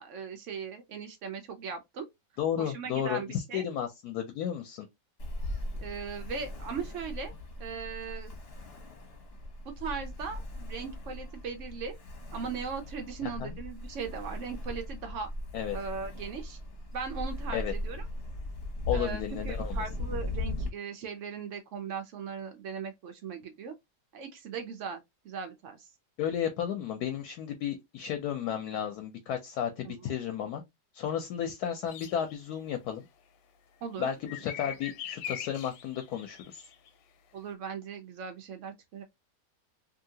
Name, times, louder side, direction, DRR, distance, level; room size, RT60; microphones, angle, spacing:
voice 1, 0.0-2.1 2.6-3.6 5.8-7.3 7.6-8.3 9.8-12.0 12.3-15.3 15.7-16.6 16.9-18.0 18.9-23.8 24.1-25.9 29.8-30.1 33.8-34.3 37.3-39.0, right 5 dB, 80° right, 0.6 m, -39 dB
voice 2, 2.4-4.9 13.2-13.5 15.5-15.8 17.5-17.7 18.9-19.8 26.2-30.6 30.9-33.0 34.0-36.7, left 9 dB, 70° left, 1.0 m, -33 dB
Ocean, 5.2-20.7, left 1 dB, 45° left, 0.9 m, -38 dB
sound 1, 31.9-32.4 34.3-36.9, left 10 dB, 85° left, 1.3 m, -41 dB
2.8 x 2.7 x 2.7 m
omnidirectional pair, 2.0 m